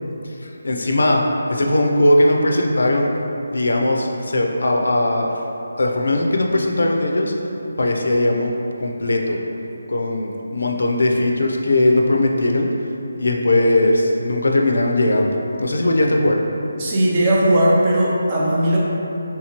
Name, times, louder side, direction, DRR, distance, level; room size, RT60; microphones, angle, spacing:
voice 1, 0.4-1.2 1.5-3.1 3.5-5.3 5.8-7.3 7.8-8.5 8.8-9.4 9.9-12.7 13.2-16.4, left 1 dB, 80° left, 1 dB, 0.4 m, -19 dB
voice 2, 16.8-18.8, right 1 dB, 25° right, -5 dB, 0.5 m, -17 dB
3.5 x 2.8 x 2.8 m, 2.9 s
figure-of-eight pair, 170°, 0 cm